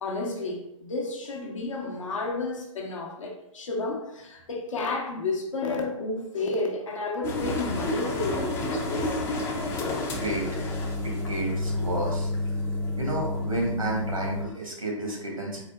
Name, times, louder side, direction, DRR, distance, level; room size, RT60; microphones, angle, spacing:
voice 1, 0.0-9.2, left 3 dB, 65° left, 0.9 m, -31 dB
sound 1, 7.2-14.4, left 2 dB, 15° left, 0.4 m, -29 dB
voice 2, 10.1-10.4 11.0-12.3 13.0-15.7, right 2 dB, 90° right, 1.4 m, -31 dB
4.0 x 3.6 x 2.3 m
figure-of-eight pair, 120°, 17 cm